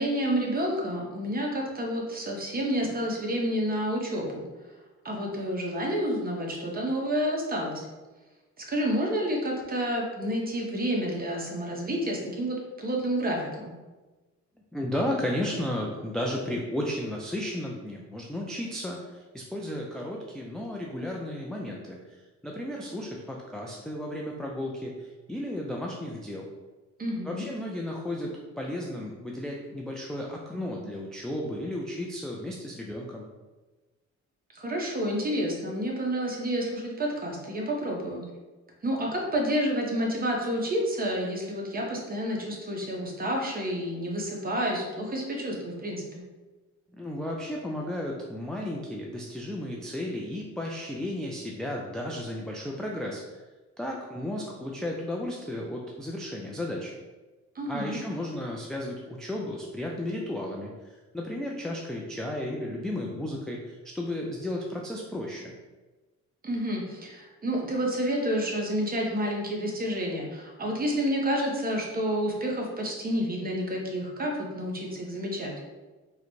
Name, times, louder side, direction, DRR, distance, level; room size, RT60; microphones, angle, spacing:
voice 1, 0.0-4.5 5.0-7.9 8.6-13.7 27.0-27.4 34.5-38.2 38.8-46.2 57.5-58.0 66.4-75.5, equal, 30° right, -1 dB, 0.8 m, -29 dB
voice 2, 14.7-22.0 22.4-26.5 27.3-33.3 46.9-53.2 53.8-56.9 57.7-60.7 61.1-65.5, left 1 dB, ahead, -2 dB, 0.3 m, -34 dB
3.8 x 2.1 x 3.0 m, 1.2 s
cardioid pair, 90°, 30 cm